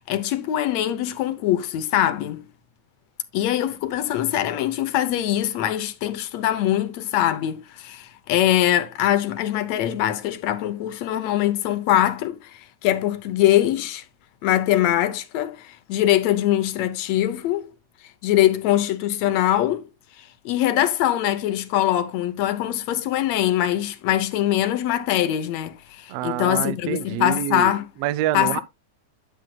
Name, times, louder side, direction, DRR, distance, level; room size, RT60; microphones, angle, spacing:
voice 1, 0.0-2.5 3.3-14.1 14.4-17.7 18.2-19.8 20.2-27.9 28.3-28.6, left 12 dB, 70° left, 1.9 m, -22 dB
voice 2, 26.1-28.6, right 13 dB, 80° right, 1.4 m, -27 dB
9.5 x 9.1 x 2.3 m
omnidirectional pair, 3.4 m